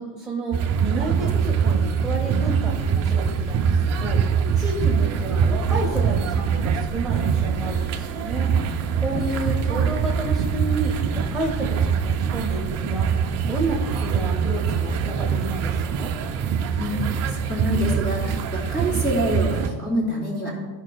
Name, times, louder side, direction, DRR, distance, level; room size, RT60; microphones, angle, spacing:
voice 1, 0.0-8.5 9.0-13.1 13.5-16.1, right 2 dB, ahead, -5 dB, 0.8 m, -31 dB
sound 1, 0.5-19.7, right 6 dB, 35° right, 0.5 m, -23 dB
voice 2, 16.8-20.6, equal, 20° left, -3 dB, 2.5 m, -26 dB
14.5 x 5.1 x 2.3 m, 1.3 s
cardioid pair, 165°, 47 cm